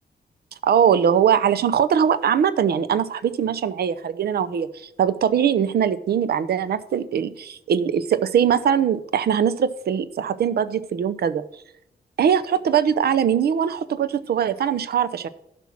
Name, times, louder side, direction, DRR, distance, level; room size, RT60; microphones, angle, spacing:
voice 1, 0.6-11.4 12.2-15.3, right 8 dB, 65° right, 14 dB, 0.7 m, -21 dB
11.0 x 6.1 x 5.9 m, 0.80 s
wide cardioid pair, 155°, 17 cm